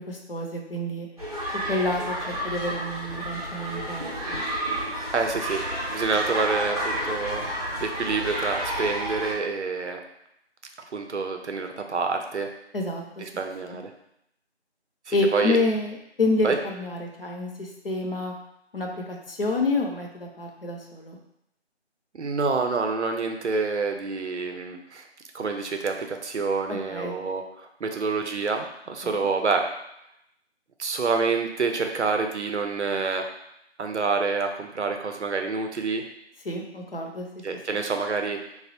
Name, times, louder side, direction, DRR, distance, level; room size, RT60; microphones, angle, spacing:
voice 1, 0.1-1.1 1.7-4.4 12.7-13.2 13.7-13.8 15.1-18.3 18.7-21.2 26.7-27.1 29.0-29.3 36.4-37.3 37.7-37.8, left 2 dB, 55° left, 1 dB, 0.5 m, -28 dB
sound 1, 1.2-9.3, equal, 35° right, 0.5 m, -31 dB
voice 2, 5.1-10.0 10.9-12.5 13.4-13.9 15.1-15.6 16.4-16.6 22.1-25.1 25.3-29.6 30.8-33.3 33.8-36.0 37.4-38.4, right 4 dB, 90° right, 4 dB, 0.5 m, -27 dB
3.2 x 2.0 x 2.7 m, 0.79 s
figure-of-eight pair, 170°, 34 cm